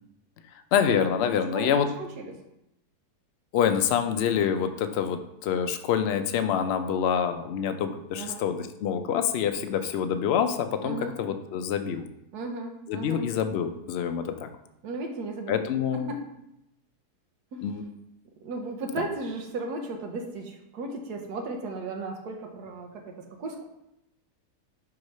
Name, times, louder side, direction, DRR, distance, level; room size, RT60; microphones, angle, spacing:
voice 1, 0.7-1.9 3.5-12.1 12.9-14.5 15.5-16.1 17.6-17.8, left 8 dB, 85° left, 8 dB, 0.5 m, -26 dB
voice 2, 1.3-2.4 8.1-8.4 10.8-11.1 12.3-13.3 14.8-15.6 15.9-16.2 17.5-17.7 18.4-23.6, right 3 dB, 85° right, 2 dB, 1.4 m, -35 dB
4.8 x 4.7 x 5.3 m, 0.84 s
omnidirectional pair, 1.7 m